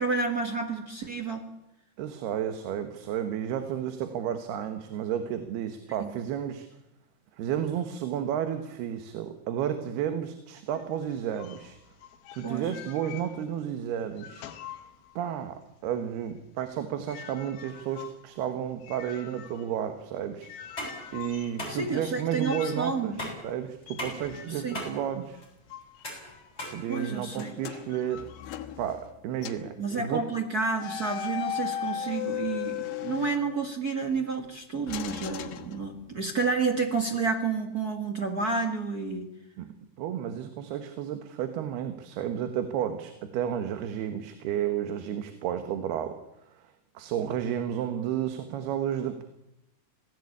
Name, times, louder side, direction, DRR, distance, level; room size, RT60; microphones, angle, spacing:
voice 1, 0.0-1.4 6.0-6.1 12.4-12.7 21.7-23.3 24.5-24.8 26.9-27.5 29.8-39.3, right 4 dB, 45° right, 4 dB, 1.3 m, -30 dB
voice 2, 2.0-6.7 7.4-11.8 12.3-14.5 15.2-20.9 21.1-23.2 23.4-25.4 26.7-28.3 28.8-30.2 39.6-39.7 40.0-46.2 46.5-49.2, right 9 dB, 80° right, 8 dB, 3.3 m, -32 dB
sound 1, 10.7-13.7 14.0-15.5 15.8-27.4 27.9-28.6, left 10 dB, 75° left, 3.1 m, -47 dB
sound 2, 20.5-27.5, equal, 15° left, 7.7 m, -40 dB
sound 3, 27.3-29.2 29.4-29.7 30.8-34.0 34.9-36.3, left 10 dB, 90° left, 3.3 m, -36 dB
26.0 x 17.5 x 8.5 m, 0.88 s
omnidirectional pair, 4.5 m